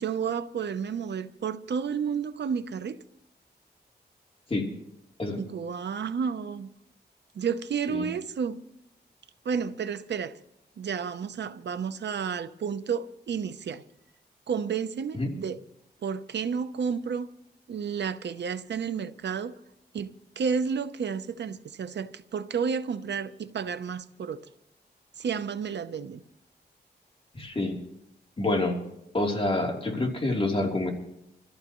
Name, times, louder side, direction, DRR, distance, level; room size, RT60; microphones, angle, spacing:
voice 1, 0.0-3.0 5.4-6.7 7.3-8.6 9.4-10.4 10.8-13.8 14.5-15.6 16.0-17.3 17.7-19.6 19.9-24.4 25.2-26.2, right 6 dB, 80° right, 0.8 m, -31 dB
voice 2, 27.3-27.8 28.4-28.8 29.1-30.9, left 2 dB, 30° left, 3.3 m, -27 dB
26.0 x 14.0 x 3.1 m
cardioid pair, 75°, 18 cm